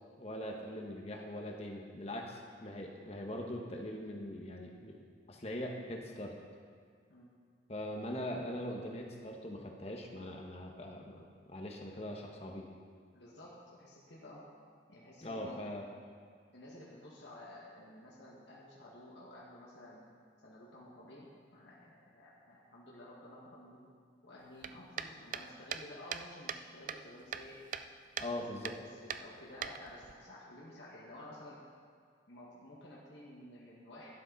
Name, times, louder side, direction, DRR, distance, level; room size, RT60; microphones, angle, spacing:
voice 1, 0.2-5.0 5.3-6.3 7.7-12.7 15.2-15.8 28.2-28.7, left 1 dB, 35° left, 1 dB, 1.3 m, -41 dB
voice 2, 13.1-14.5 14.9-15.6 16.5-20.0 20.4-23.8 24.2-27.6 28.2-28.4 28.8-31.6 32.3-34.1, left 1 dB, 75° left, -6 dB, 1.9 m, -52 dB
sound 1, 24.6-26.6 26.9-27.9 28.2-28.3 28.6-28.8 29.1-30.1, right 8 dB, 45° right, 0.4 m, -40 dB
12.5 x 11.5 x 4.1 m, 2.1 s
head